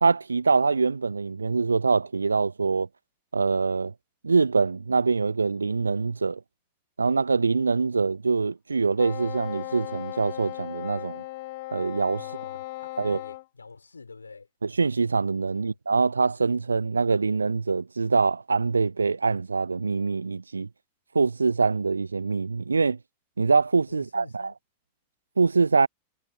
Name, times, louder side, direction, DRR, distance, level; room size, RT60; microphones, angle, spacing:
voice 1, 0.0-2.9 3.3-3.9 4.2-6.4 7.0-11.2 11.7-12.2 13.0-13.2 14.8-20.7 21.1-23.0 23.4-24.5 25.4-25.9, right 4 dB, 75° right, 0.6 m, -24 dB
Wind instrument woodwind instrument, 9.0-13.5, left 20 dB, 50° left, 5.5 m, -37 dB
voice 2, 12.2-14.5 15.5-15.8 23.9-24.6, left 4 dB, 80° left, 5.4 m, -46 dB
figure-of-eight pair, 90°, 0 cm